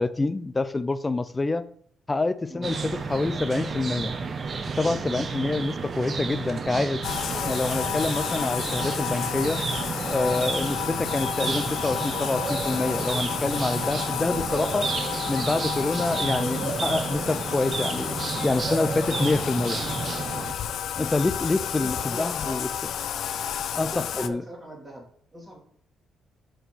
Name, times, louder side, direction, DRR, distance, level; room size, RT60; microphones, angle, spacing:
voice 1, 0.0-1.6 2.1-4.2 4.8-7.0 7.5-9.6 10.1-14.9 15.3-18.2 18.4-19.8 21.0-22.7 23.8-24.4, left 3 dB, 20° left, 13 dB, 0.5 m, -26 dB
sound 1, 2.6-20.5, right 4 dB, 45° right, 0.8 m, -31 dB
Bathtub (filling or washing), 7.0-24.3, left 9 dB, 70° left, 0.5 m, -31 dB
voice 2, 21.6-22.6 23.8-25.1 25.3-25.6, right 1 dB, 5° right, -4 dB, 3.0 m, -41 dB
6.6 x 4.5 x 6.2 m, 0.62 s
cardioid pair, 90°, 0 cm